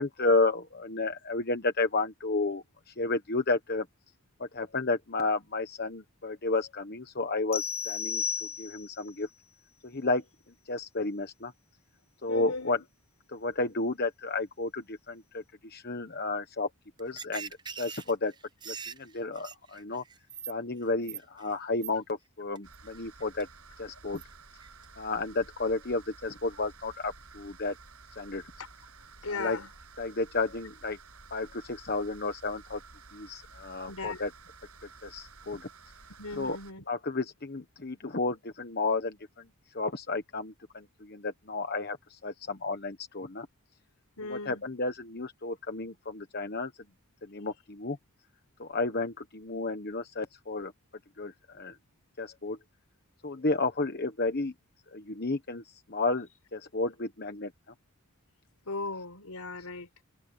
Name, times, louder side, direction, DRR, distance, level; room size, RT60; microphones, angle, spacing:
voice 1, 0.0-3.9 4.4-9.3 9.8-10.2 10.7-11.5 12.2-12.8 13.3-16.7 17.0-18.3 18.7-20.0 20.5-23.5 23.8-24.2 25.0-27.7 28.2-28.4 29.3-29.6 30.0-31.0 31.3-32.8 33.1-34.3 35.0-35.7 36.4-36.6 36.9-39.5 39.7-43.5 44.3-46.7 47.2-48.0 48.6-50.7 51.2-51.8 52.2-52.6 53.2-54.5 54.9-57.5, left 3 dB, 45° left, 1.2 m, -32 dB
sound 1, 7.5-9.1, left 7 dB, 25° left, 0.5 m, -33 dB
voice 2, 12.3-12.8 28.6-28.7 29.2-29.7 33.9-34.2 36.2-36.8 44.2-44.6 58.6-59.9, left 3 dB, 85° left, 4.4 m, -37 dB
sound 2, 17.0-20.5 20.8-21.5 21.8-21.9 22.6-22.8 23.2-23.4 24.2-24.3 24.6-24.9, right 7 dB, 20° right, 0.6 m, -41 dB
sound 3, 22.6-36.7, right 4 dB, 80° right, 6.9 m, -53 dB
head